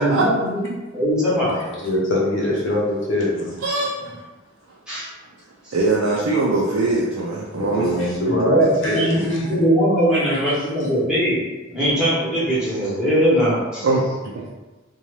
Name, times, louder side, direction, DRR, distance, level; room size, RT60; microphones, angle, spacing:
voice 1, 0.0-1.6 4.9-5.1 5.6-5.7 8.3-13.9, equal, 5° right, -10 dB, 1.0 m, -20 dB
voice 2, 1.7-3.6 7.5-9.6 10.1-10.6, left 1 dB, 65° left, -4 dB, 0.8 m, -23 dB
voice 3, 3.6-3.9 5.7-7.9 13.8-14.4, right 2 dB, 75° right, -5 dB, 0.4 m, -21 dB
2.6 x 2.2 x 3.1 m, 1.2 s
head